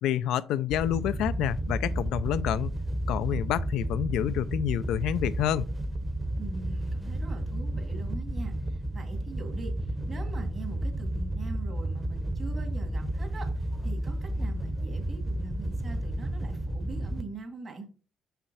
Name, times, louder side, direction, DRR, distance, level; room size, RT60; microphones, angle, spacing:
voice 1, 0.0-2.7 3.1-5.7, left 11 dB, 90° left, 0.4 m, -28 dB
Wind / Boat Water vehicle, 0.7-17.2, right 1 dB, 15° right, 0.9 m, -32 dB
voice 2, 6.4-13.5 13.8-17.9, right 3 dB, 45° right, 2.2 m, -43 dB
5.7 x 5.6 x 4.1 m
cardioid pair, 90°, 0 cm